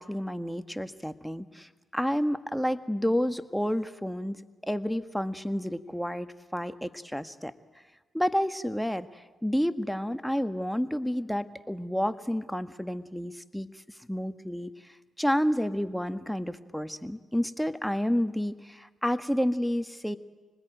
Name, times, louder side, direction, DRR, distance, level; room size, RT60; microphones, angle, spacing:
voice 1, 0.0-7.5 8.1-13.7 14.1-14.7 15.2-20.2, equal, ahead, 10 dB, 1.5 m, -30 dB
25.5 x 19.5 x 9.1 m, 1.3 s
hypercardioid pair, 45°, 0 cm